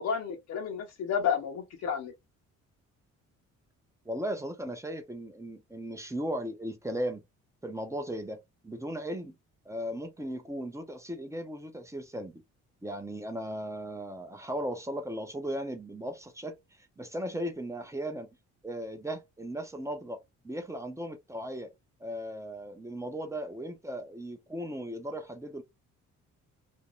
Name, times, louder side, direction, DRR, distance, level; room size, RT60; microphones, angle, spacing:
voice 1, 0.0-2.1, left 7 dB, 60° left, 0.7 m, -31 dB
voice 2, 4.1-7.2 7.6-8.4 8.6-9.3 9.7-12.4 12.8-16.6 17.0-18.3 18.6-21.7 22.0-25.6, equal, 10° right, 0.6 m, -37 dB
2.5 x 2.2 x 3.0 m
cardioid pair, 90°, 30 cm